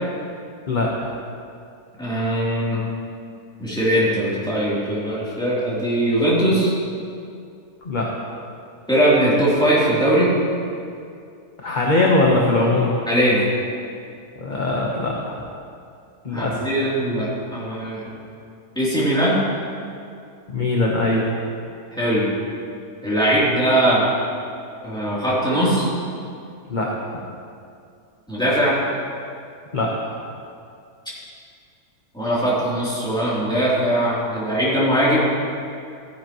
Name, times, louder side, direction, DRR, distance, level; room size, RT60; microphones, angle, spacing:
voice 1, 0.7-1.1 7.8-8.1 11.6-12.9 14.4-15.3 16.2-16.6 20.5-21.3 26.7-26.9 29.7-29.9, left 2 dB, 35° left, -3 dB, 1.0 m, -21 dB
voice 2, 2.0-2.8 3.6-6.7 8.9-10.3 13.1-13.5 16.3-18.1 18.7-19.4 21.9-22.3 23.0-24.1 24.8-25.9 28.3-28.8 32.1-35.3, right 1 dB, 5° left, -9 dB, 3.0 m, -20 dB
14.5 x 10.0 x 3.0 m, 2.4 s
omnidirectional pair, 1.8 m